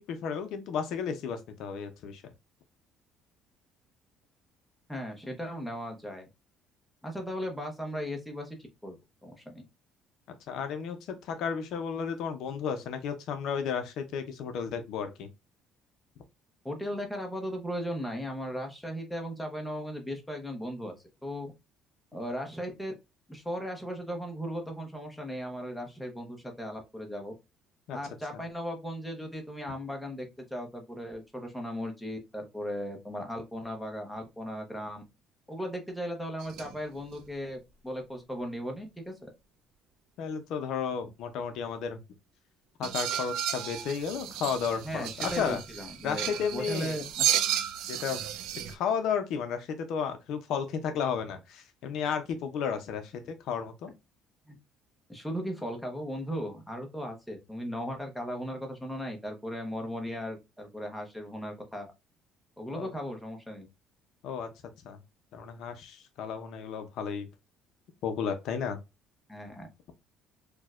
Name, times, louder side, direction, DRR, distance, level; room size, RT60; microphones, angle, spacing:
voice 1, 0.0-2.2 10.5-11.0 11.2-15.3 27.9-28.0 40.2-42.0 42.8-45.6 46.0-47.0 47.9-48.3 48.7-53.9 62.7-62.9 64.2-64.5 64.8-65.0 65.3-67.3 68.0-68.8, left 7 dB, 60° left, 0.5 m, -33 dB
voice 2, 4.9-6.3 7.0-8.6 8.8-9.0 9.2-9.6 16.6-21.0 21.2-21.5 22.1-22.9 23.3-27.3 27.9-35.0 35.5-39.3 44.8-47.3 54.5-54.6 55.1-61.9 62.6-63.7 69.3-69.7, equal, ahead, 0.6 m, -37 dB
Metal Bowl Smack and Drag, 36.4-36.7 37.0-37.2 42.8-48.7, right 11 dB, 75° right, 0.4 m, -33 dB
4.4 x 2.1 x 2.3 m
cardioid pair, 175°, 0 cm